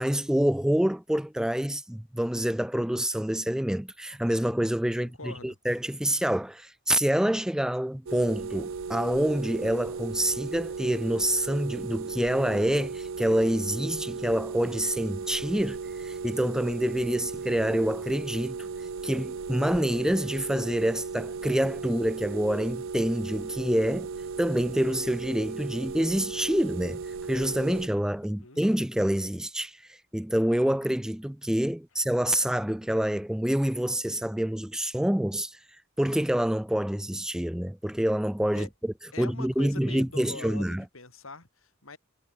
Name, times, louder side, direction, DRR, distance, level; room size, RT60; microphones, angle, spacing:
voice 1, 0.0-24.1 24.4-35.6 36.0-40.8, equal, 5° right, 0.3 m, -27 dB
voice 2, 5.0-5.6 28.2-28.6 38.5-38.7 39.1-42.0, left 3 dB, 85° left, 5.6 m, -43 dB
sound 1, 8.1-27.9, right 5 dB, 75° right, 0.6 m, -36 dB
head